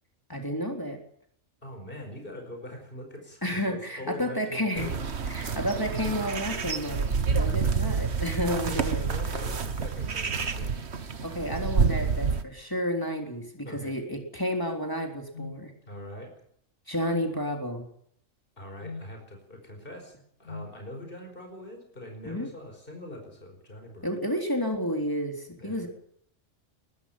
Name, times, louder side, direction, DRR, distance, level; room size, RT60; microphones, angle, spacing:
voice 1, 0.3-1.0 3.4-4.9 5.3-9.1 11.2-15.7 16.9-17.9 22.2-22.5 24.0-25.9, equal, 15° left, 2 dB, 3.7 m, -31 dB
voice 2, 1.6-5.0 7.3-8.3 8.7-10.9 11.2-11.3 13.7-14.0 15.9-16.3 18.6-24.1 25.6-25.9, left 1 dB, 45° left, 4 dB, 5.2 m, -43 dB
sound 1, 4.8-12.4, right 5 dB, 60° right, 1.6 m, -28 dB
Whiskey Jug Whistle, 15.3-15.6 17.1-17.4 18.8-19.1 20.5-20.8, left 3 dB, 65° left, 1.6 m, -39 dB
21.5 x 14.5 x 8.7 m, 0.66 s
omnidirectional pair, 1.3 m